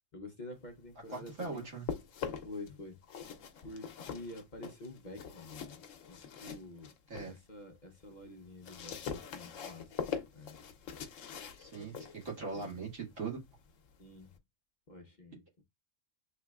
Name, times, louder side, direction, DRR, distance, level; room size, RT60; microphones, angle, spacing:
voice 1, 0.1-1.7 2.4-3.0 3.6-6.9 7.2-10.6 11.8-12.1 12.5-12.8 14.0-14.3 14.9-15.6, left 2 dB, 40° left, 0.8 m, -48 dB
sound 1, 0.9-2.7 3.0-7.4 7.8-14.4, left 7 dB, 85° left, 1.0 m, -44 dB
voice 2, 1.1-1.9 7.1-7.3 11.5-11.9 12.2-13.4, right 4 dB, 75° right, 2.2 m, -40 dB
6.6 x 3.0 x 2.3 m
omnidirectional pair, 1.3 m